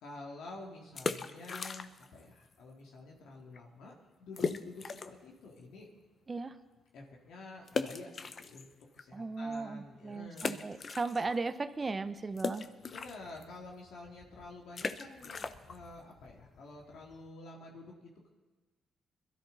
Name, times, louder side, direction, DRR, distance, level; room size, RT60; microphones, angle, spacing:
voice 1, 0.0-3.9 4.2-5.9 6.9-10.6 12.9-18.3, left 2 dB, 80° left, -1 dB, 2.4 m, -49 dB
sound 1, 0.8-2.2 2.5-2.6 3.2-3.3 3.5-3.6 4.4-5.3 5.8-5.9 7.7-9.0 9.5-9.6 10.3-11.5 11.8-17.3, left 5 dB, 45° left, 0.8 m, -39 dB
voice 2, 9.1-12.7, right 3 dB, 30° right, 12 dB, 0.8 m, -36 dB
21.5 x 13.0 x 4.1 m, 1.3 s
cardioid pair, 90°, 0 cm